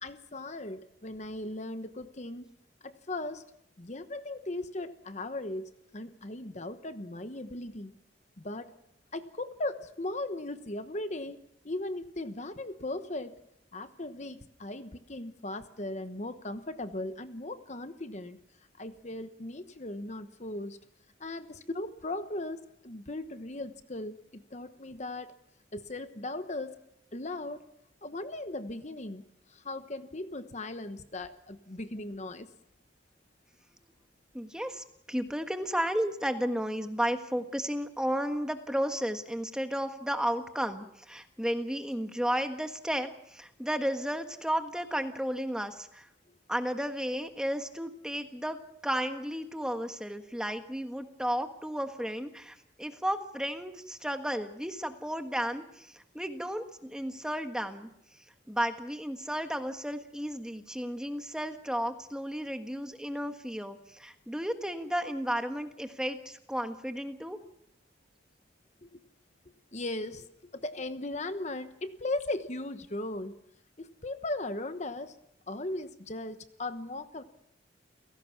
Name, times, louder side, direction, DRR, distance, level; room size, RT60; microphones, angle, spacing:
voice 1, 0.0-2.5 2.8-3.4 3.8-7.9 8.4-8.7 9.1-13.3 13.7-18.4 18.8-20.8 21.2-25.3 25.7-26.8 27.1-27.6 28.0-29.2 29.5-32.5 68.8-68.9 69.7-70.3 70.5-73.3 73.8-75.1 75.5-77.2, left 2 dB, 40° left, 10 dB, 1.1 m, -38 dB
voice 2, 34.3-46.1 46.5-48.6 48.8-57.9 58.5-67.4, equal, 5° right, 6 dB, 1.4 m, -33 dB
29.5 x 17.5 x 6.0 m, 0.80 s
head